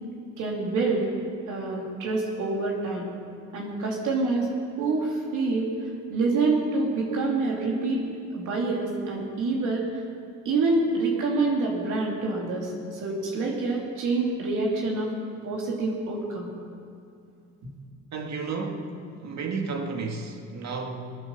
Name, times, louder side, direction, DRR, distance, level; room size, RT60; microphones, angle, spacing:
voice 1, 0.4-1.1 1.5-3.1 3.5-4.5 4.8-5.7 6.1-8.0 8.3-9.8 10.4-15.1 15.4-16.5 17.6-17.7, right 3 dB, 85° right, -2 dB, 2.8 m, -26 dB
voice 2, 18.1-21.1, right 4 dB, 65° right, 3 dB, 2.0 m, -32 dB
17.5 x 9.7 x 7.2 m, 2.4 s
cardioid pair, 90°, 30 cm